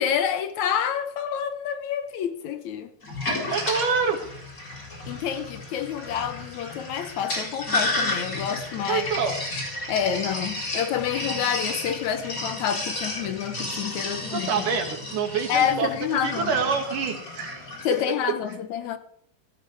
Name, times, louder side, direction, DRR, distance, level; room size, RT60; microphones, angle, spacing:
voice 1, 0.0-2.9 5.1-9.1 9.9-14.5 15.5-16.6 17.8-19.0, left 9 dB, 70° left, 2.2 m, -28 dB
Sink (filling or washing), 3.0-18.1, left 2 dB, 25° left, 4.0 m, -32 dB
voice 2, 3.5-4.2 8.9-9.4 14.1-15.9 16.2-17.6, right 5 dB, 85° right, 3.6 m, -26 dB
16.0 x 15.5 x 3.4 m
omnidirectional pair, 3.6 m